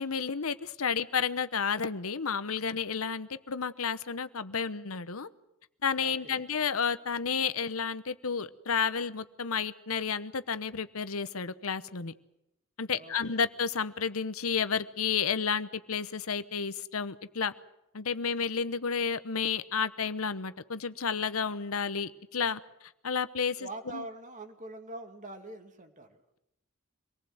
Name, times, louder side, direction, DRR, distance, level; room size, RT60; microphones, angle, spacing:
voice 1, 0.0-5.3 5.8-12.1 12.8-17.5 17.9-22.6 23.0-23.7 23.9-24.0, left 6 dB, 80° left, 13 dB, 1.0 m, -31 dB
voice 2, 6.0-6.5 12.9-13.4 23.6-26.2, right 2 dB, 35° right, 6 dB, 2.3 m, -44 dB
26.0 x 19.0 x 7.9 m, 0.87 s
head